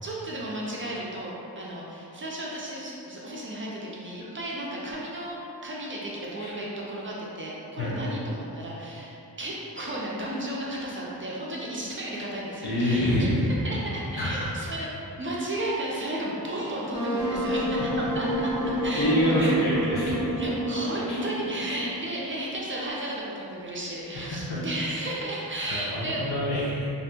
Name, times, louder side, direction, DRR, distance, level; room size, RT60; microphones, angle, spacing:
voice 1, 0.0-5.4 5.6-14.9 15.2-19.5 20.4-26.2, right 1 dB, 35° right, -5 dB, 0.4 m, -34 dB
voice 2, 12.6-13.4 14.2-14.5 18.9-20.2 21.1-21.2 24.1-24.4 25.6-26.9, equal, 75° left, -7 dB, 0.7 m, -26 dB
Wind instrument woodwind instrument, 16.9-22.0, equal, 90° left, 1.1 m, -29 dB
2.7 x 2.5 x 2.2 m, 2.9 s
wide cardioid pair, 80°, 39 cm